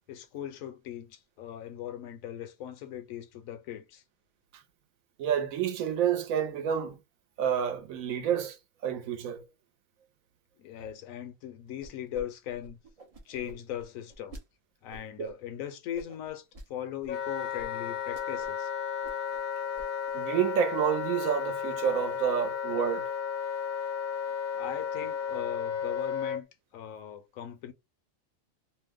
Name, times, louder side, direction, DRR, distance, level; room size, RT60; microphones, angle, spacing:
voice 1, 0.1-4.0 10.6-12.8 13.3-14.4 14.8-18.7 24.5-26.5 26.7-27.7, left 10 dB, 80° left, 1.0 m, -39 dB
voice 2, 5.2-7.0 7.4-8.6 8.8-9.4 15.2-15.3 20.1-23.1, right 9 dB, 80° right, 1.1 m, -29 dB
sound 1, 11.8-12.2 12.5-14.4 14.9-15.3 15.9-16.7 17.0-17.1 17.6-17.7 18.0-18.6 18.9-19.4 19.8-20.1, right 1 dB, 45° right, 0.4 m, -48 dB
Wind instrument woodwind instrument, 17.1-26.4, left 7 dB, 55° left, 0.6 m, -33 dB
2.8 x 2.1 x 3.4 m
omnidirectional pair, 1.4 m